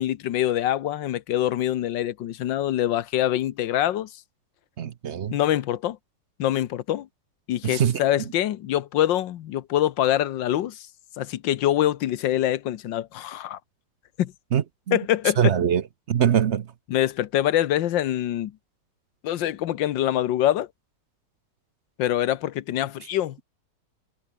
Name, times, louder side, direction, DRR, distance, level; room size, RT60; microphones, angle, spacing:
voice 1, 0.0-4.1 5.3-6.0 6.4-7.1 7.5-10.9 11.2-13.6 14.2-14.3 14.9-15.5 16.9-18.5 19.2-20.7 22.0-23.4, left 12 dB, 85° left, 1.6 m, -24 dB
voice 2, 4.8-5.3 7.6-8.0 14.5-15.0 15.4-15.8 16.1-16.7, right 9 dB, 55° right, 0.8 m, -22 dB
omnidirectional pair, 1.9 m